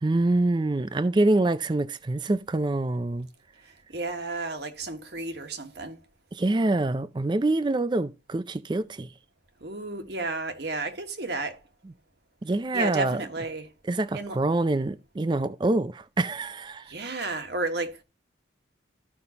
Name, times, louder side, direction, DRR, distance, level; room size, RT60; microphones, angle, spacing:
voice 1, 0.0-3.3 6.3-9.1 12.4-13.2 13.9-16.8, right 2 dB, 25° right, 0.4 m, -25 dB
voice 2, 3.9-6.0 9.6-11.6 12.7-13.7 14.1-14.4 16.9-18.0, right 2 dB, 60° right, 1.4 m, -32 dB
13.5 x 5.4 x 2.8 m
head